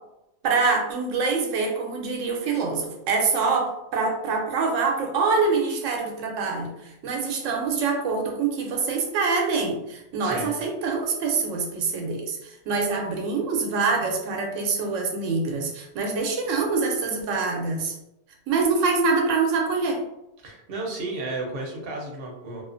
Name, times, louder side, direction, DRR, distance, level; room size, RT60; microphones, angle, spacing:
voice 1, 0.4-17.9 18.5-20.0, right 4 dB, 90° right, 1 dB, 0.9 m, -25 dB
voice 2, 20.4-22.6, right 2 dB, 55° right, -1 dB, 0.8 m, -33 dB
2.4 x 2.4 x 2.4 m, 0.86 s
omnidirectional pair, 1.3 m